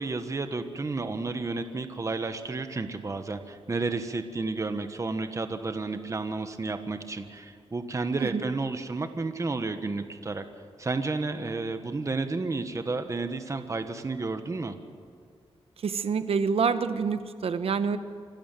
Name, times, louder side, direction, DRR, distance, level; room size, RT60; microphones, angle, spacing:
voice 1, 0.0-10.4 10.8-14.8, right 3 dB, 30° right, 8 dB, 1.3 m, -31 dB
voice 2, 15.8-18.0, right 5 dB, 70° right, 11 dB, 1.0 m, -27 dB
27.0 x 12.5 x 7.7 m, 2.2 s
wide cardioid pair, 105°, 10 cm